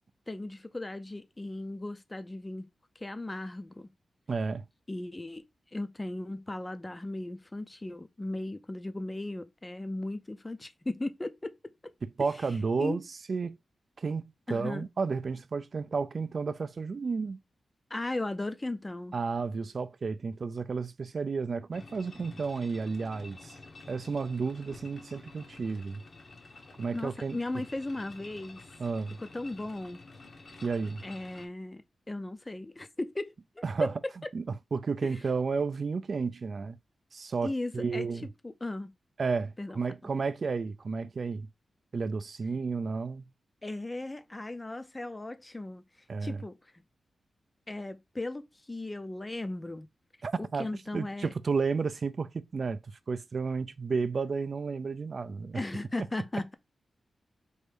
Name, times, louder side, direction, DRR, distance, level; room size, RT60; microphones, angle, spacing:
voice 1, 0.3-2.7 3.0-3.9 4.9-5.4 5.7-11.6 11.8-11.9 12.8-13.0 14.5-14.9 17.9-19.1 26.9-28.6 29.2-30.0 31.0-33.6 37.4-38.1 38.4-38.9 39.6-39.8 43.6-45.8 46.2-46.6 47.7-49.9 50.4-51.3 55.5-56.5, left 2 dB, 15° left, 0.5 m, -37 dB
voice 2, 4.3-4.6 12.0-13.0 13.3-13.6 14.0-17.4 19.1-23.6 23.9-26.0 26.8-27.6 28.8-29.2 30.6-31.0 33.6-36.8 37.1-38.3 39.2-41.5 41.9-43.3 46.1-46.4 50.2-50.7 50.9-55.6, right 4 dB, 45° right, 0.3 m, -32 dB
sound 1, 21.7-31.5, left 3 dB, 45° left, 0.8 m, -50 dB
4.5 x 2.6 x 3.3 m
wide cardioid pair, 135°, 0 cm